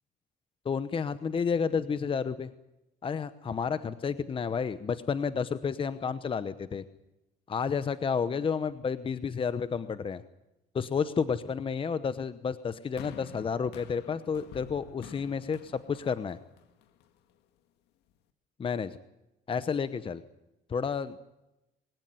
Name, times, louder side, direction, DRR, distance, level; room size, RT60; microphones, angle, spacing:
voice 1, 0.6-2.5 3.0-6.8 7.5-10.2 10.7-16.4 18.6-19.0 19.5-20.2 20.7-21.2, left 6 dB, 30° left, 13 dB, 0.9 m, -31 dB
sound 1, 13.0-17.3 18.1-18.2, left 9 dB, 90° left, 1.8 m, -50 dB
23.0 x 17.0 x 9.5 m, 0.95 s
cardioid pair, 110°, 17 cm